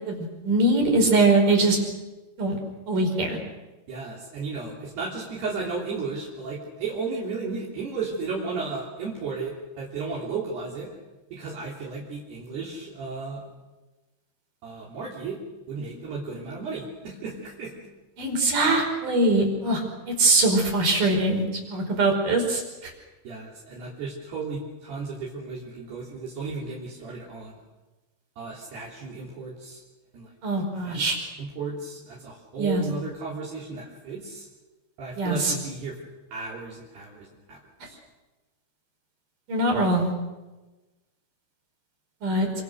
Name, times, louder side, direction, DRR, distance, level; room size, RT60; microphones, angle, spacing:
voice 1, 0.0-1.8 2.4-2.5 2.9-3.4 18.2-21.4 21.7-22.9 30.4-31.2 32.6-32.8 35.2-35.5 39.5-40.1 42.2-42.5, right 2 dB, 45° right, 2 dB, 6.5 m, -22 dB
voice 2, 3.9-10.9 11.3-13.4 14.6-15.4 15.7-17.9 23.3-27.6 28.4-29.8 30.1-30.3 30.7-31.1 31.4-34.5 35.0-36.0 36.3-37.6 37.8-38.0, right 4 dB, 60° right, -4 dB, 5.5 m, -34 dB
28.0 x 27.0 x 6.5 m, 1.1 s
omnidirectional pair, 5.3 m